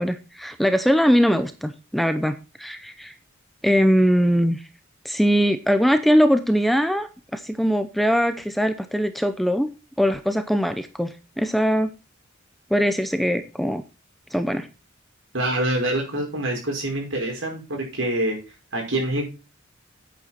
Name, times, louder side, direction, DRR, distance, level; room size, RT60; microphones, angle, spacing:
voice 1, 0.0-3.1 3.6-4.6 5.0-9.7 10.0-11.9 12.7-13.8 14.3-14.7, equal, ahead, 9 dB, 0.6 m, -21 dB
voice 2, 15.3-18.4 18.7-19.2, right 1 dB, 70° right, 1 dB, 5.3 m, -25 dB
9.2 x 9.0 x 4.4 m, 0.29 s
head